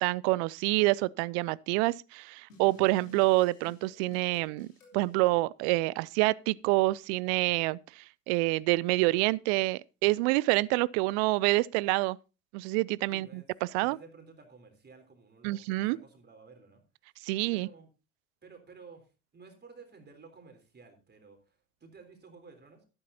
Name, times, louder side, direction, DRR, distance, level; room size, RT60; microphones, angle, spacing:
voice 1, 0.0-4.7 4.9-12.2 12.5-13.4 13.7-14.0 15.4-16.0 17.2-17.7, right 21 dB, 60° right, 0.5 m, -27 dB
sound 1, 2.5-5.1, equal, 85° left, 3.1 m, -53 dB
voice 2, 13.1-13.5 13.8-16.8 17.5-17.9 18.4-22.9, right 4 dB, 25° right, 3.6 m, -53 dB
12.5 x 11.5 x 2.8 m
hypercardioid pair, 65°, 38 cm